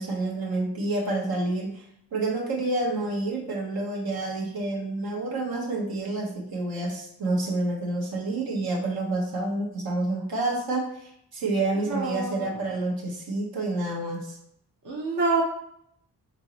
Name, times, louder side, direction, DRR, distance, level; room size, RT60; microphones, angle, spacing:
voice 1, 0.0-1.9 2.1-14.4, right 2 dB, 70° right, -2 dB, 1.2 m, -28 dB
voice 2, 11.8-12.5 14.8-15.4, right 3 dB, 50° right, -4 dB, 0.9 m, -27 dB
4.5 x 3.0 x 2.9 m, 0.73 s
cardioid pair, 70°, 38 cm